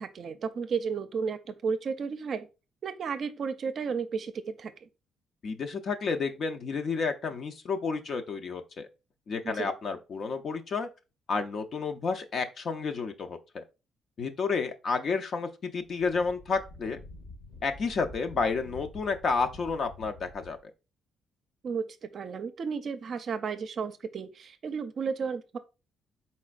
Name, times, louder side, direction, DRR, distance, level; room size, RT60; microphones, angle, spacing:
voice 1, 0.0-2.5 2.8-4.9 9.4-9.7 21.6-25.6, right 5 dB, 55° right, 0.5 m, -33 dB
voice 2, 5.4-8.9 9.3-10.9 11.3-13.6 14.2-17.0 17.6-20.6, left 4 dB, 55° left, 0.6 m, -31 dB
Wind, 15.9-20.6, left 2 dB, 75° left, 1.3 m, -48 dB
4.2 x 4.2 x 2.4 m
cardioid pair, 90°, 0 cm